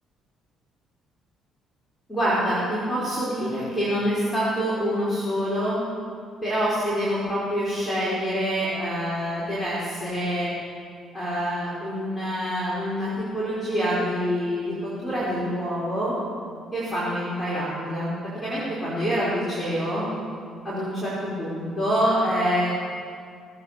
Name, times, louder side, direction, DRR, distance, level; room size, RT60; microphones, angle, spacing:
voice 1, 2.1-5.8 6.4-10.5 11.1-14.7 15.0-16.1 16.7-18.1 18.4-20.1 20.6-22.7, equal, 10° left, -9 dB, 4.8 m, -26 dB
18.5 x 8.3 x 6.7 m, 2.1 s
supercardioid pair, 70°, 0 cm